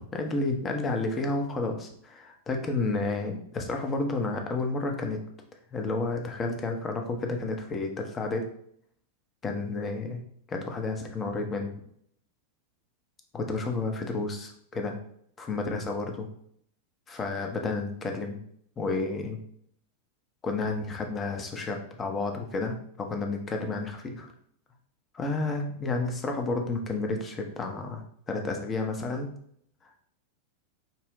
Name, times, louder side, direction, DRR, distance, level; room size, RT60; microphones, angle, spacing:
voice 1, 0.0-5.2 5.7-8.4 9.4-10.2 10.5-11.7 13.3-15.0 15.4-16.3 17.1-18.4 18.8-19.4 20.4-24.3 25.1-29.3, left 3 dB, 20° left, 4 dB, 0.6 m, -31 dB
5.3 x 2.1 x 2.5 m, 0.67 s
figure-of-eight pair, 90°, 0 cm